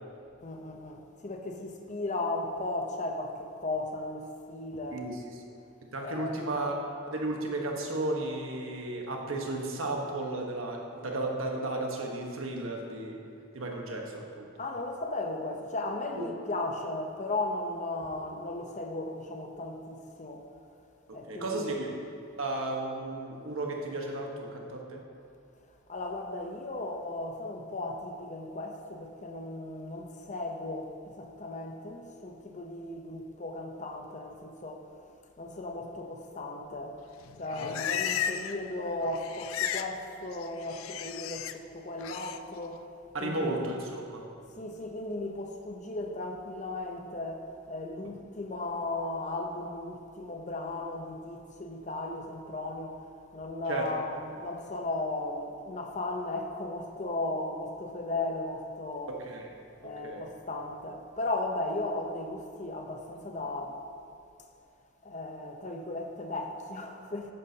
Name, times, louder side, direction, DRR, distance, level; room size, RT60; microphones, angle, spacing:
voice 1, 0.4-5.1 6.0-6.5 14.6-20.5 21.1-21.9 25.9-34.9 35.4-37.0 37.4-42.8 43.2-43.6 44.6-53.0 53.3-59.2 59.8-63.8 65.0-67.3, left 2 dB, 35° left, 0.8 m, -36 dB
voice 2, 5.9-6.7 7.1-13.2 13.5-14.5 16.1-16.2 21.1-21.9 22.4-25.0 37.5-37.7 43.1-44.2 53.7-53.9 59.2-59.5 60.0-60.3, right 2 dB, 85° right, 1.3 m, -34 dB
Livestock farm animals working animals, 37.2-38.6 38.9-39.9 40.2-41.5 42.0-42.4, left 9 dB, 85° left, 0.4 m, -34 dB
11.0 x 9.1 x 2.9 m
head